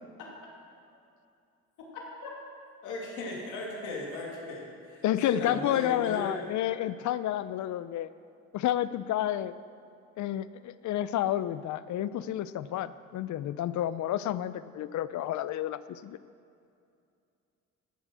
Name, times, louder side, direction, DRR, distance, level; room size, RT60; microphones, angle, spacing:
voice 1, 2.8-6.4, left 2 dB, 90° left, -2 dB, 2.8 m, -37 dB
voice 2, 5.0-8.1 8.5-9.5 10.2-16.2, left 12 dB, 70° left, 15 dB, 0.6 m, -30 dB
15.5 x 7.6 x 6.3 m, 2.5 s
cardioid pair, 90°, 30 cm